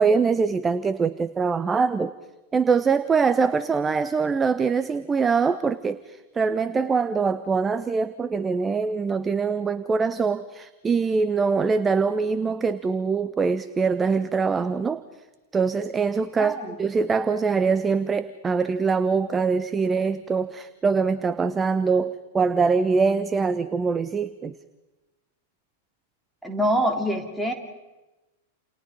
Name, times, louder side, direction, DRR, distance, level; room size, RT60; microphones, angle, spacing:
voice 1, 0.0-2.1 2.5-15.0 15.5-24.5, right 5 dB, 15° right, 14 dB, 0.8 m, -23 dB
voice 2, 16.4-16.8 26.4-27.5, equal, ahead, 1 dB, 3.3 m, -25 dB
29.5 x 28.5 x 5.2 m, 1.1 s
figure-of-eight pair, 95°, 0 cm